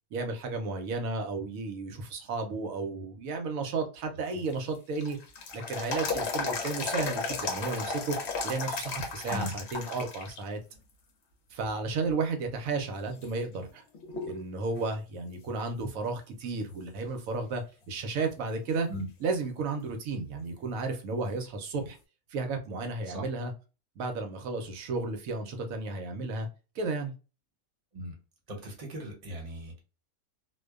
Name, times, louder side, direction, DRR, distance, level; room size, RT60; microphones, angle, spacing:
voice 1, 0.1-5.2 5.5-8.2 8.4-10.6 11.5-13.8 14.3-18.9 19.2-22.0 22.3-23.5 24.0-26.5 26.8-27.1, right 3 dB, 70° right, 1.0 m, -33 dB
sound 1, 4.3-10.4 10.8-10.9 11.6-12.1 12.6-12.7 13.2-14.4 14.8-14.9 18.2-18.3 21.3-21.4, left 4 dB, 60° left, 0.8 m, -34 dB
voice 2, 9.3-9.6 18.9-19.1 23.0-23.3 27.9-28.2 28.5-29.8, equal, 30° right, 0.8 m, -38 dB
2.5 x 2.2 x 2.2 m
omnidirectional pair, 1.5 m